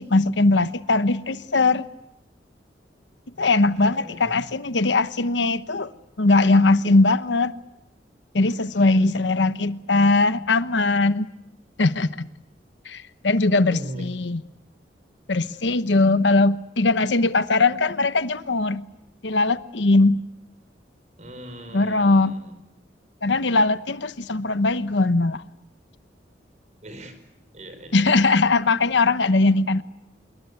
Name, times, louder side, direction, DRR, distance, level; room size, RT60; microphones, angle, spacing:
voice 1, 0.0-1.9 3.4-5.9 6.2-7.5 8.3-11.3 11.8-12.3 12.8-14.4 15.3-18.8 19.2-20.2 21.7-22.4 23.2-25.4 27.9-29.8, left 3 dB, 85° left, 1.0 m, -20 dB
voice 2, 3.5-4.4 8.7-9.1 13.7-14.1 21.2-22.5 26.8-27.2 27.5-28.3, right 1 dB, 40° right, 4.8 m, -40 dB
26.5 x 23.0 x 9.6 m
head